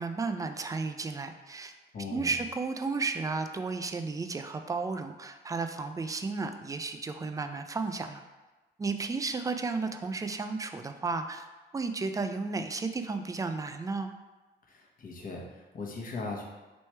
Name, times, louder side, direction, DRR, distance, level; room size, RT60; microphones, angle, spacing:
voice 1, 0.0-1.7 2.1-8.2 8.8-11.5 11.7-14.1, right 4 dB, 15° right, 7 dB, 0.3 m, -33 dB
voice 2, 1.9-2.3 14.7-16.4, left 3 dB, 45° left, -1 dB, 1.0 m, -39 dB
3.2 x 3.1 x 4.4 m, 1.2 s
cardioid pair, 90°, 20 cm